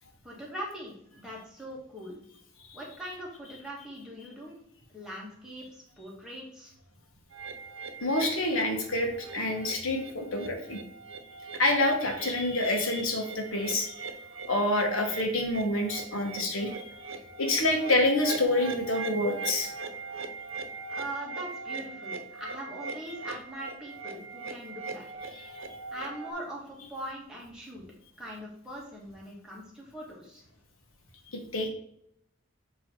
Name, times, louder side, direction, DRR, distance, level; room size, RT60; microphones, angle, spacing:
voice 1, 0.2-2.2 2.7-4.5 4.9-6.7 20.9-25.1 25.9-27.8 28.2-30.4, right 1 dB, 5° right, -4 dB, 1.7 m, -41 dB
sound 1, 7.3-26.3, right 4 dB, 85° right, 0.8 m, -41 dB
voice 2, 8.0-10.8 11.6-13.9 14.5-16.9 17.4-19.7 25.3-25.5 31.5-31.7, left 1 dB, 90° left, 3 dB, 1.3 m, -27 dB
7.6 x 3.1 x 4.4 m, 0.70 s
head